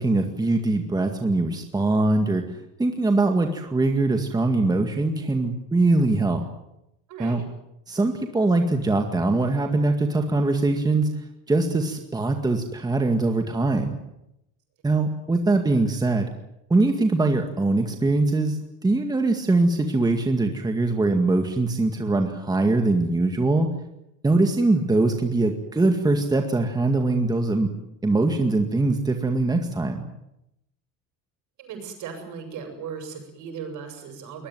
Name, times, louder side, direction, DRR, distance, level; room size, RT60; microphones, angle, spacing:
voice 1, 0.0-6.4 7.2-7.4 7.9-11.1 11.5-14.0 14.8-16.3 16.7-18.6 18.8-23.7 24.2-27.7 28.0-30.0, right 2 dB, 10° right, 4 dB, 2.0 m, -22 dB
voice 2, 7.1-7.4 31.6-34.5, right 6 dB, 60° right, 6 dB, 8.0 m, -37 dB
22.5 x 20.5 x 9.4 m, 0.83 s
cardioid pair, 150°, 34 cm